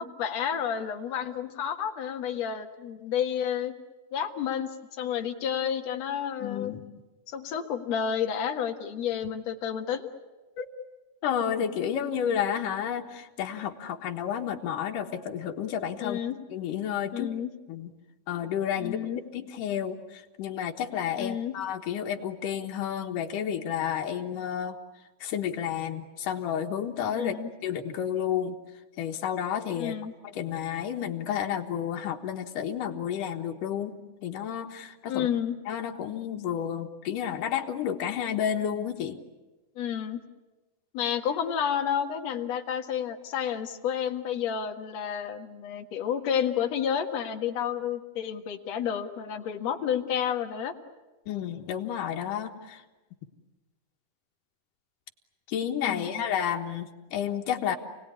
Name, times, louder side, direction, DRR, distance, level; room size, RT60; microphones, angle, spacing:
voice 1, 0.0-3.7 4.1-6.8 7.3-10.1 16.0-16.4 17.1-17.5 18.8-19.2 21.2-21.5 27.1-27.5 29.8-30.1 35.1-35.6 39.8-40.2 40.9-50.7 55.8-56.2, left 8 dB, 60° left, 4 dB, 2.7 m, -30 dB
voice 2, 6.4-6.8 10.6-10.7 11.2-16.2 16.5-17.3 17.7-17.9 18.3-24.8 25.2-27.4 27.6-28.6 29.0-30.0 30.2-35.3 35.7-39.2 51.3-52.8 55.5-57.8, left 9 dB, 85° left, 2 dB, 3.0 m, -31 dB
29.0 x 19.0 x 9.8 m, 1.2 s
omnidirectional pair, 3.7 m